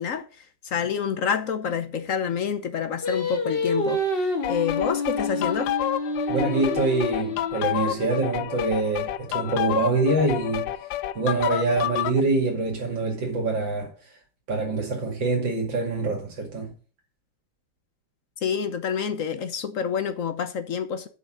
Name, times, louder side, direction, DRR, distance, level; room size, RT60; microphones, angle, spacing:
voice 1, 0.0-5.7 18.4-21.1, left 7 dB, 55° left, 1.0 m, -28 dB
Singing, 3.0-8.3, left 2 dB, 35° left, 1.6 m, -28 dB
sound 1, 4.4-12.2, left 13 dB, 85° left, 1.3 m, -29 dB
voice 2, 6.3-10.7 11.1-13.9 14.5-16.7, right 3 dB, 90° right, 3.1 m, -25 dB
7.1 x 5.7 x 7.4 m
omnidirectional pair, 2.0 m